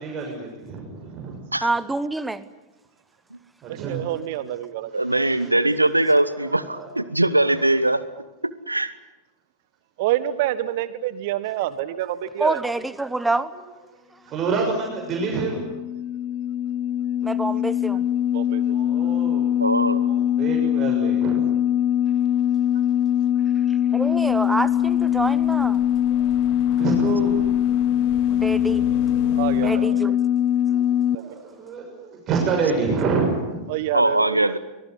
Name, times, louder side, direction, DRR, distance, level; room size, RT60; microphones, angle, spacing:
voice 1, 0.0-1.5 3.6-4.1 4.9-5.5 6.1-6.9 7.4-7.5 14.3-15.6 18.7-19.5 20.0-21.4 25.9-26.3 26.8-27.4 30.7-33.6, right 4 dB, 30° right, 0 dB, 6.7 m, -28 dB
voice 2, 1.6-2.4 12.4-13.5 17.2-18.0 23.9-25.8 28.3-28.9 29.6-30.2, right 2 dB, 5° right, 16 dB, 1.1 m, -26 dB
voice 3, 3.7-5.3 10.0-12.6 18.3-18.8 29.3-30.1 31.1-31.3 33.7-34.6, right 13 dB, 50° right, 14 dB, 1.6 m, -28 dB
voice 4, 4.9-8.0 8.7-8.9 19.6-20.1 33.9-34.6, right 1 dB, 85° right, 16 dB, 1.2 m, -21 dB
sound 1, 15.0-31.2, left 10 dB, 30° left, 0.9 m, -22 dB
sound 2, 24.0-29.9, left 5 dB, 45° left, 3.5 m, -40 dB
24.0 x 21.5 x 9.8 m, 1.0 s
figure-of-eight pair, 90°, 0 cm